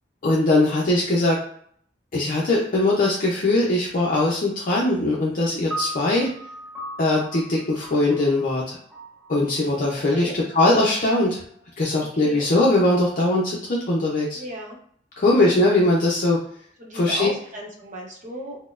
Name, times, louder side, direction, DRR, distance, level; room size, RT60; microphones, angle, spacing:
voice 1, 0.2-1.4 2.1-6.3 7.0-8.8 9.3-11.4 11.8-14.4 15.2-16.4 16.9-17.3, left 2 dB, 50° left, -4 dB, 0.5 m, -21 dB
sound 1, 5.7-12.2, right 1 dB, 5° right, 0.6 m, -39 dB
voice 2, 14.3-14.8 16.8-18.6, right 1 dB, 45° right, -1 dB, 0.8 m, -35 dB
4.1 x 2.1 x 2.4 m, 0.62 s
head